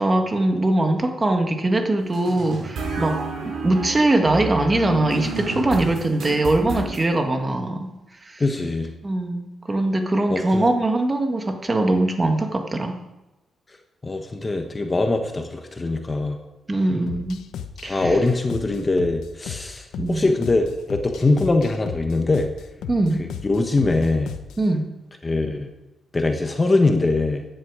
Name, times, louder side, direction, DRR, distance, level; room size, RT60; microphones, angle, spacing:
voice 1, 0.0-3.2 3.4-7.9 8.2-8.4 9.0-13.0 16.7-17.4 17.8-18.1 20.0-20.2 22.9-23.2 24.6-24.8, right 2 dB, 20° right, 4 dB, 1.7 m, -21 dB
sound 1, 2.1-7.0, right 3 dB, 75° right, 5.5 m, -31 dB
voice 2, 8.4-8.9 10.3-10.6 14.0-16.4 17.8-22.5 23.2-24.3 25.2-25.7 26.1-27.4, left 2 dB, 25° left, 5 dB, 1.2 m, -22 dB
sound 2, 17.1-24.7, left 8 dB, 85° left, 0.9 m, -36 dB
15.0 x 10.5 x 5.0 m, 1.0 s
cardioid pair, 120°, 0 cm